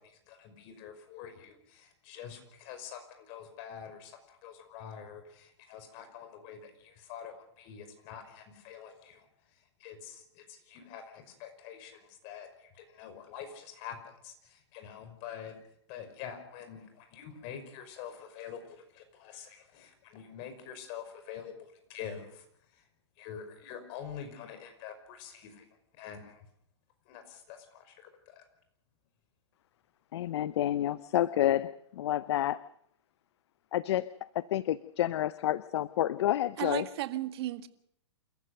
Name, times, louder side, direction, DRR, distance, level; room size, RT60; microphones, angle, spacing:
voice 1, 0.0-9.3 9.5-15.5 15.9-21.5 21.9-22.8 23.2-25.7 25.9-26.5 27.1-28.4, left 8 dB, 45° left, 7 dB, 5.6 m, -46 dB
voice 2, 30.1-32.6 33.7-36.9, left 12 dB, 65° left, 17 dB, 0.7 m, -29 dB
voice 3, 36.6-37.7, right 14 dB, 60° right, 10 dB, 1.8 m, -34 dB
29.0 x 14.5 x 6.6 m, 0.71 s
hypercardioid pair, 125°, 15 cm